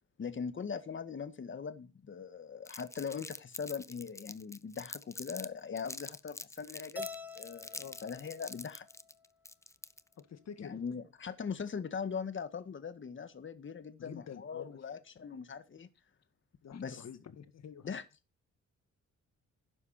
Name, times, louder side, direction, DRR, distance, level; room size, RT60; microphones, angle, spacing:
voice 1, 0.2-7.1 7.3-8.9 10.6-15.9 16.7-17.1 17.8-18.0, left 6 dB, 40° left, 1.7 m, -41 dB
Crumpling crinkling, 2.6-5.5 5.8-10.2, left 2 dB, 10° left, 0.6 m, -46 dB
Keyboard (musical), 7.0-9.3, left 3 dB, 5° right, 1.1 m, -47 dB
voice 2, 10.2-10.7 14.0-14.8 15.3-15.4 16.6-18.0, left 8 dB, 60° left, 2.0 m, -48 dB
12.0 x 10.0 x 4.3 m
cardioid pair, 130°, 30 cm